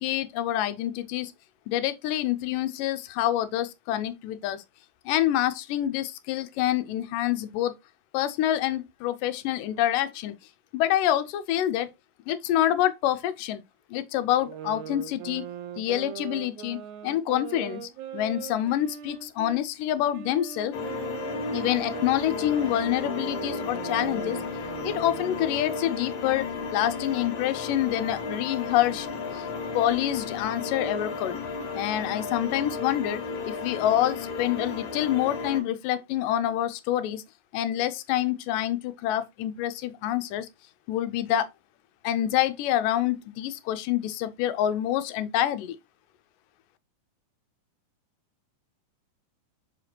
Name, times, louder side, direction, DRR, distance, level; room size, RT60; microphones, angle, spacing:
voice 1, 0.0-1.3 1.7-4.6 5.1-7.7 8.1-10.3 10.7-11.9 12.3-13.6 13.9-15.5 15.8-16.8 17.0-17.8 18.1-20.7 21.5-24.4 24.8-26.5 26.7-29.1 29.3-29.4 29.7-31.4 31.7-37.2 37.5-40.5 40.9-41.5 42.0-45.8, left 12 dB, 80° left, 2.3 m, -27 dB
sound 1, 14.4-19.6 20.1-25.7, right 10 dB, 75° right, 1.9 m, -40 dB
sound 2, 20.7-35.6, left 4 dB, 60° left, 2.8 m, -34 dB
6.9 x 5.0 x 2.8 m
omnidirectional pair, 3.8 m